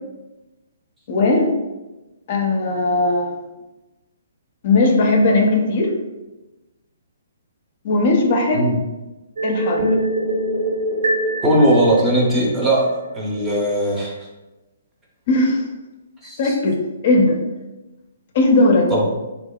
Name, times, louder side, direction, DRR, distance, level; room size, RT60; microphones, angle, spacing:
voice 1, 1.1-1.5 2.3-3.4 4.6-5.9 7.8-8.7 9.4-9.9 15.3-15.6 16.4-17.4 18.3-18.9, left 2 dB, 50° left, 1 dB, 0.4 m, -17 dB
sound 1, 9.4-12.7, right 1 dB, 75° right, 0.8 m, -23 dB
voice 2, 11.4-14.1 16.2-16.5 18.9-19.1, right 1 dB, 15° right, -4 dB, 0.6 m, -18 dB
2.7 x 2.2 x 2.2 m, 1.1 s
hypercardioid pair, 140°, 0 cm